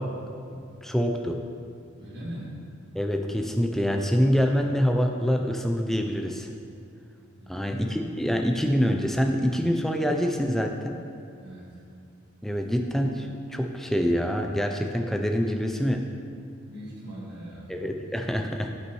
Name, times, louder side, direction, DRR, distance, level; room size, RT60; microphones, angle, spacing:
voice 1, 0.0-1.4 2.9-6.5 7.5-11.0 12.4-16.0 17.7-18.7, equal, ahead, 3 dB, 0.4 m, -26 dB
voice 2, 2.0-2.5 7.4-8.2 11.4-11.7 16.7-17.7, equal, 50° right, -8 dB, 1.8 m, -40 dB
8.3 x 8.3 x 3.1 m, 2.5 s
head